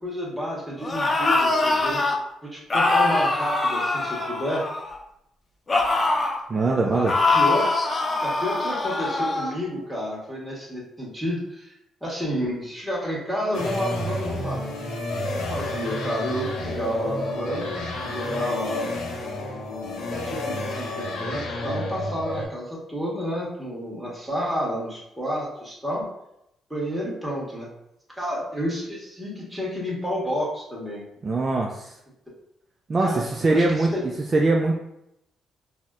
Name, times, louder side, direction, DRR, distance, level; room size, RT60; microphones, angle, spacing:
voice 1, 0.0-2.0 2.5-4.7 6.5-7.6 8.2-11.7 12.0-14.7 15.2-19.0 20.1-26.1 26.7-27.7 28.2-31.0 33.0-34.0, equal, 5° right, -5 dB, 1.3 m, -30 dB
sound 1, 0.8-2.2 2.7-5.0 5.7-6.4 7.1-9.5, left 3 dB, 30° left, 0.5 m, -23 dB
voice 2, 6.5-7.1 31.2-31.9 32.9-33.9 34.3-34.7, right 2 dB, 40° right, 0 dB, 0.3 m, -22 dB
sound 2, 13.5-22.5, left 2 dB, 80° left, 0.5 m, -30 dB
4.1 x 2.1 x 2.4 m, 0.80 s
cardioid pair, 90°, 0 cm